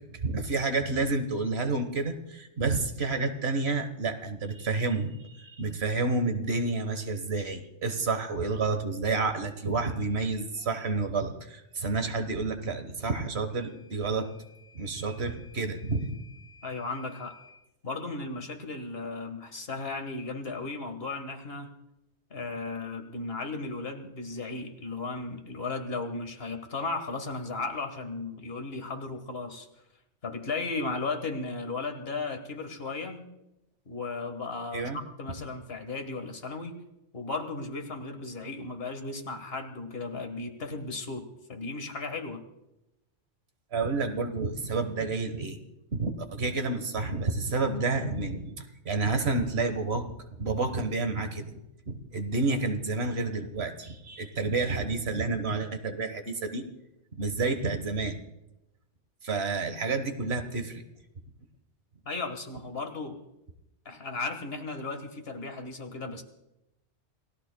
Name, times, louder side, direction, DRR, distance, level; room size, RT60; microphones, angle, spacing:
voice 1, 0.1-14.3 14.7-16.2 34.7-35.0 43.7-45.6 45.9-50.1 50.4-51.6 51.8-56.6 57.1-58.2 59.2-60.8, right 3 dB, 65° right, 7 dB, 1.5 m, -30 dB
Microwave oven / Alarm, 13.5-17.6, left 4 dB, ahead, 3.8 m, -56 dB
voice 2, 16.6-17.4 17.8-21.7 22.3-29.7 30.2-33.3 33.9-36.8 37.1-42.5 62.1-63.2 63.9-66.2, left 3 dB, 60° left, 7 dB, 1.7 m, -35 dB
29.0 x 16.5 x 2.3 m, 0.89 s
omnidirectional pair, 1.2 m